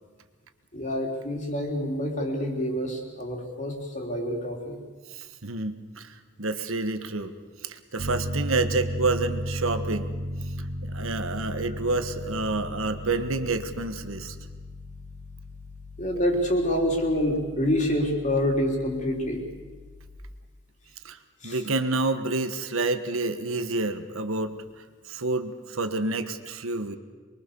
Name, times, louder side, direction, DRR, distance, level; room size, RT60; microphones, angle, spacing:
voice 1, 0.7-4.8 16.0-19.4 21.4-21.6, equal, 35° left, 1 dB, 3.7 m, -27 dB
voice 2, 5.1-7.3 7.6-10.1 10.8-14.3 21.0-27.0, right 3 dB, 70° right, 9 dB, 1.4 m, -29 dB
Piano, 8.0-20.2, equal, 55° right, 1.7 m, -36 dB
24.5 x 22.5 x 7.0 m, 1.4 s
head